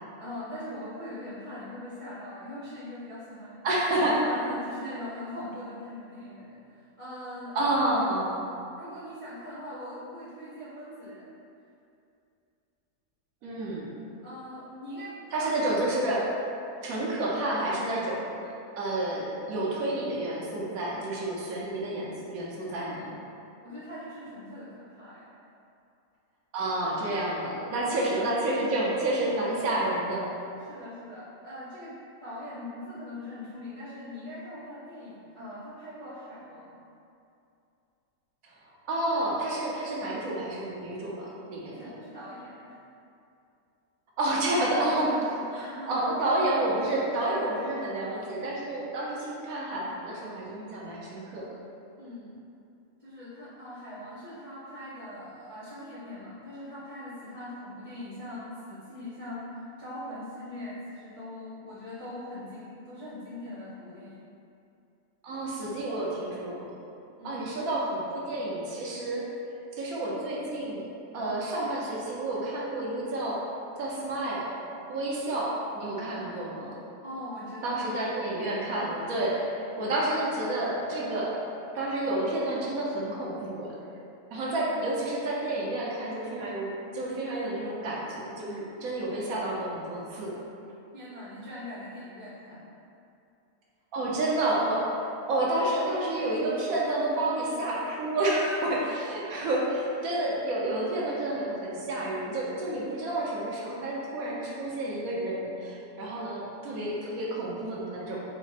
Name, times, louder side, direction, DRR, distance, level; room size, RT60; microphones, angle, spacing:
voice 1, 0.2-3.6 4.2-7.6 8.8-11.4 14.2-15.7 23.6-25.3 27.8-28.3 30.6-31.9 32.2-36.8 41.6-42.8 45.0-46.1 52.0-52.4 53.0-64.2 67.2-67.4 77.0-77.8 90.9-92.7, left 1 dB, 45° left, -11 dB, 0.4 m, -41 dB
voice 2, 3.6-4.2 7.5-8.3 13.4-13.9 15.3-16.3 16.8-23.1 26.5-30.3 38.5-38.6 38.9-41.9 44.2-45.1 45.5-45.6 45.9-51.5 65.2-66.7 67.2-69.3 69.8-70.9 71.1-73.4 73.8-74.5 74.9-76.7 77.6-81.4 81.7-83.7 84.3-90.4 93.9-94.9 95.3-108.2, right 1 dB, 65° right, -5 dB, 1.0 m, -30 dB
4.2 x 2.0 x 3.9 m, 2.7 s
omnidirectional pair, 1.7 m